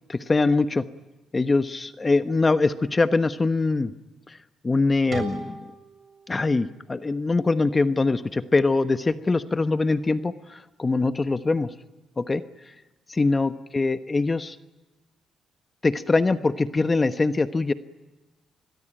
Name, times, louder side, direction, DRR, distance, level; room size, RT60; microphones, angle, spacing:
voice 1, 0.1-0.8 1.3-3.9 4.3-4.4 4.6-5.7 6.3-11.7 12.2-12.7 13.1-14.6 15.8-17.7, left 3 dB, 25° left, 12 dB, 1.1 m, -23 dB
sound 1, 5.1-8.0, right 3 dB, 40° right, 7.4 m, -40 dB
28.5 x 21.5 x 9.0 m, 1.1 s
cardioid pair, 90°, 0 cm